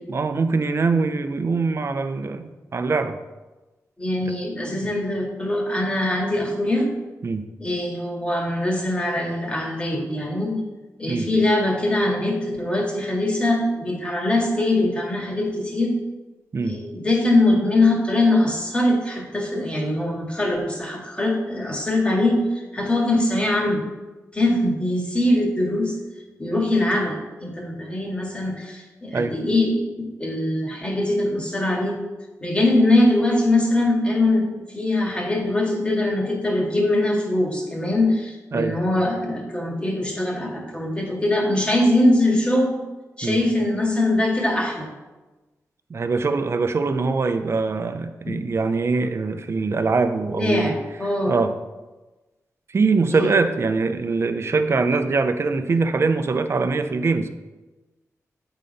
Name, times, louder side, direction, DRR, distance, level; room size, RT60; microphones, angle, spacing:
voice 1, 0.1-3.2 4.7-4.9 7.2-7.4 11.1-11.3 16.5-16.8 29.1-29.3 38.5-38.8 43.2-43.4 45.9-50.7 51.3-51.5 52.7-57.3, right 4 dB, 50° right, 9 dB, 0.6 m, -23 dB
voice 2, 4.0-6.9 7.6-10.7 11.0-16.0 16.6-23.8 24.3-25.9 26.4-32.0 32.4-42.7 43.2-44.9 48.2-48.5 50.3-51.4 53.1-53.3, left 1 dB, 20° left, -1 dB, 1.9 m, -22 dB
8.3 x 4.0 x 5.4 m, 1.2 s
wide cardioid pair, 85°, 6 cm